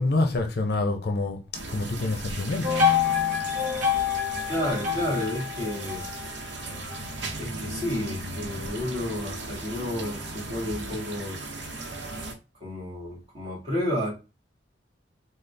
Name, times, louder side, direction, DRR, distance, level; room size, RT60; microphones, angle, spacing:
voice 1, 0.0-1.4 1.7-2.7, left 2 dB, 60° left, 0.6 m, -26 dB
sound 1, 1.5-12.3, right 2 dB, 75° right, 0.7 m, -37 dB
sound 2, 2.6-7.1, left 7 dB, 50° right, 1.5 m, -26 dB
voice 2, 4.4-6.0 7.4-11.4 12.6-14.1, left 1 dB, 30° right, 1.9 m, -31 dB
3.9 x 2.1 x 3.3 m
head